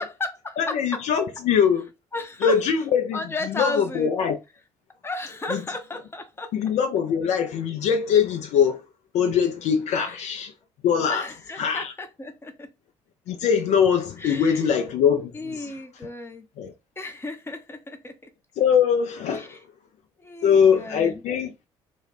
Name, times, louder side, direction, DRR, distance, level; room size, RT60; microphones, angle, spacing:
voice 1, 0.0-1.0 2.1-2.6 3.1-4.1 5.0-6.5 9.9-10.2 11.1-12.7 14.2-14.7 15.3-16.5 17.0-18.3 19.3-19.6 20.2-21.2, left 2 dB, 15° left, 0.7 m, -34 dB
voice 2, 0.6-1.9 2.4-3.2 3.6-4.4 5.5-5.6 6.5-8.8 9.1-10.5 10.8-11.3 11.6-11.9 13.3-15.7 16.6-16.7 18.6-19.6 20.4-21.5, left 7 dB, 55° left, 0.4 m, -22 dB
2.3 x 2.1 x 3.2 m
figure-of-eight pair, 50°, 14 cm